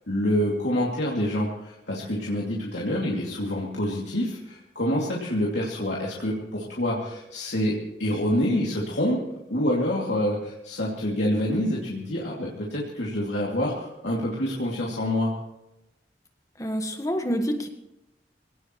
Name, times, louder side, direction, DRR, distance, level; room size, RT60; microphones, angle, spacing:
voice 1, 0.1-9.2 9.5-15.3, left 1 dB, 85° left, -4 dB, 2.7 m, -27 dB
voice 2, 16.6-17.7, equal, 20° left, 5 dB, 1.5 m, -27 dB
22.0 x 18.0 x 3.1 m, 0.91 s
head